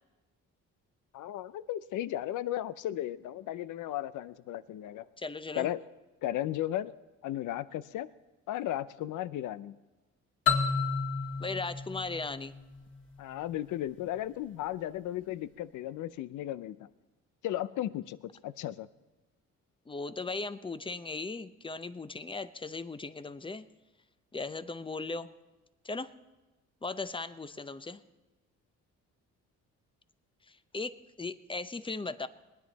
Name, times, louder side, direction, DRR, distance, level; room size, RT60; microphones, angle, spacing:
voice 1, 1.1-5.1 5.6-5.8 6.2-6.9 7.2-8.1 8.5-9.8 13.2-16.9 17.4-18.2 18.4-18.9, left 13 dB, 80° left, 15 dB, 0.6 m, -35 dB
voice 2, 5.2-5.7 11.4-12.5 19.9-23.7 24.3-25.3 25.8-26.1 26.8-28.0 30.5-32.3, left 3 dB, 15° left, 12 dB, 0.7 m, -37 dB
sound 1, 10.5-13.2, left 5 dB, 40° left, 2.4 m, -31 dB
21.0 x 9.7 x 4.1 m, 1.1 s
cardioid pair, 90°, 30 cm